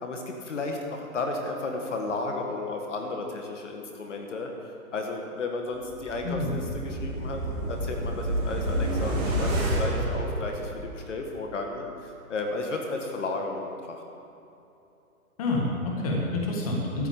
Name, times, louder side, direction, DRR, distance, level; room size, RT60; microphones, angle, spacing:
voice 1, 0.0-14.0, left 3 dB, 50° left, 2 dB, 1.6 m, -33 dB
sound 1, 5.9-11.1 11.4-11.5, right 1 dB, 20° right, 2.0 m, -29 dB
voice 2, 6.2-6.6 15.4-17.1, left 2 dB, 25° left, -2 dB, 1.7 m, -28 dB
13.5 x 7.0 x 8.6 m, 2.8 s
hypercardioid pair, 175°, 45 cm